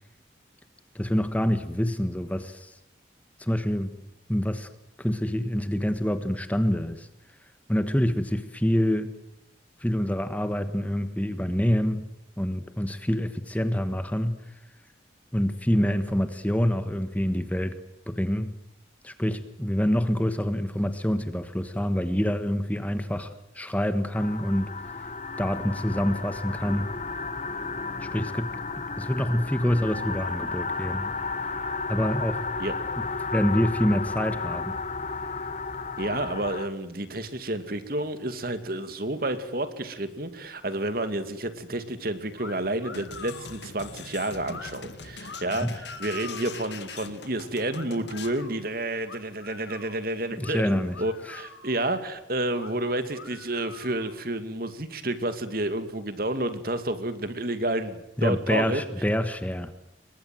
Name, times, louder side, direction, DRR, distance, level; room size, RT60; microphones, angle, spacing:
voice 1, 0.9-2.7 3.4-3.9 4.3-4.7 5.0-7.1 7.7-9.1 9.8-12.1 12.4-14.4 15.3-17.7 18.1-18.5 19.0-25.1 25.4-26.9 28.0-28.5 29.0-31.1 31.9-32.4 33.3-34.8 45.6-45.7 50.3-50.9 51.2-51.4 58.2-59.7, equal, 10° left, 10 dB, 1.3 m, -26 dB
sound 1, 24.1-36.7, left 4 dB, 40° left, 1.4 m, -33 dB
voice 2, 36.0-58.8, right 1 dB, 50° right, 9 dB, 2.5 m, -30 dB
sound 2, 42.3-42.5 42.8-43.6 44.4-44.7 45.2-46.7 47.7-48.5 49.0-50.0 50.4-50.5 50.9-51.9 52.5-52.7 53.1-54.2, left 4 dB, 90° left, 4.8 m, -44 dB
sound 3, 42.9-48.4, left 5 dB, 65° left, 2.2 m, -42 dB
29.0 x 23.0 x 7.8 m, 0.89 s
head